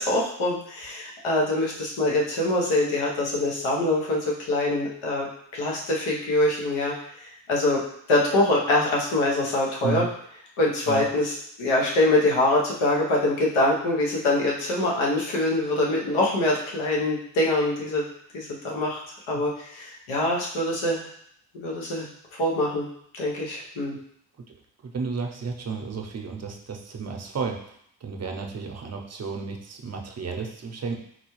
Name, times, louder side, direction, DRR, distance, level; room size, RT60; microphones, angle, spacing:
voice 1, 0.0-5.3 5.5-6.9 7.5-7.8 8.1-10.0 10.6-18.1 18.3-19.0 19.3-21.1 21.5-22.1 22.4-22.9 23.1-24.0, left 1 dB, 90° left, -3 dB, 0.9 m, -24 dB
voice 2, 24.8-27.6 28.0-31.0, right 5 dB, 35° right, 3 dB, 0.7 m, -32 dB
4.1 x 2.3 x 3.1 m, 0.68 s
supercardioid pair, 50°, 47 cm